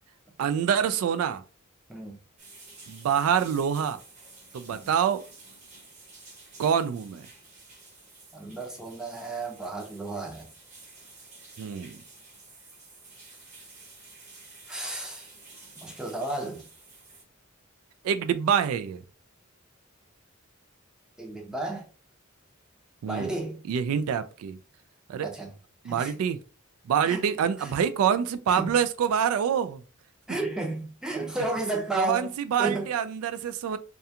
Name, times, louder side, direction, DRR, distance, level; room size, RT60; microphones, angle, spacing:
voice 1, 0.4-1.4 2.9-4.0 4.5-5.3 6.6-7.2 11.6-12.0 18.0-19.0 23.0-23.3 23.7-24.6 25.1-25.3 25.8-26.4 26.9-29.8 32.0-33.8, right 8 dB, 85° right, 0.3 m, -26 dB
sound 1, 2.4-17.2, right 3 dB, 35° right, 1.0 m, -51 dB
voice 2, 8.3-10.5 14.7-15.3 15.8-16.7 21.2-21.9 23.0-23.6 25.2-25.5 25.8-26.1 27.0-27.3 27.6-27.7 28.5-28.7 30.3-32.3 32.6-32.9, right 2 dB, 5° right, 0.5 m, -33 dB
2.4 x 2.2 x 2.7 m
head